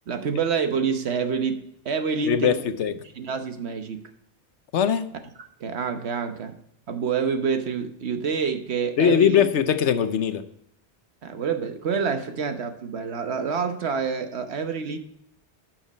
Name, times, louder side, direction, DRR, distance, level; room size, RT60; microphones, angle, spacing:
voice 1, 0.1-2.6 3.1-4.0 5.4-6.5 6.9-9.4 11.2-15.0, right 6 dB, 70° right, 1.2 m, -27 dB
voice 2, 2.2-2.9 4.7-5.1 9.0-10.4, left 8 dB, 90° left, 1.1 m, -21 dB
11.0 x 6.0 x 4.1 m
omnidirectional pair, 1.1 m